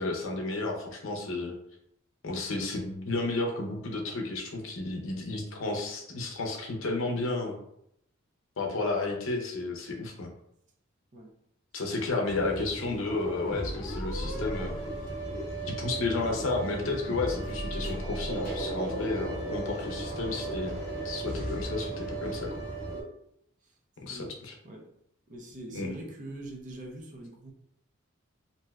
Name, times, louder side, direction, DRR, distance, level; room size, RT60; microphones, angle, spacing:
voice 1, 0.0-1.6 2.2-7.6 8.6-10.3 11.7-14.8 15.7-20.8 21.0-22.5 24.0-24.5 25.7-25.9, left 3 dB, 70° left, 1 dB, 0.6 m, -32 dB
sound 1, 12.3-23.0, right 1 dB, 45° left, 1.0 m, -35 dB
voice 2, 25.3-27.5, right 1 dB, 40° right, 1 dB, 0.5 m, -43 dB
3.1 x 2.6 x 2.3 m, 0.75 s
head